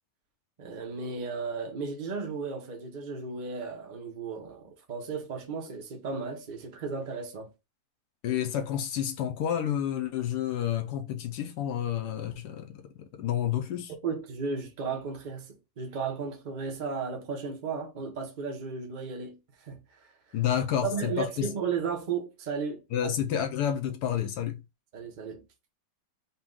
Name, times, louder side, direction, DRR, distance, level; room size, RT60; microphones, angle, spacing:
voice 1, 0.6-7.5 13.9-20.4 20.8-23.1 24.9-25.4, right 5 dB, 55° right, 0.5 m, -35 dB
voice 2, 8.2-13.9 20.3-21.5 22.9-24.6, left 10 dB, 70° left, 1.0 m, -30 dB
4.1 x 2.2 x 3.7 m
omnidirectional pair, 2.0 m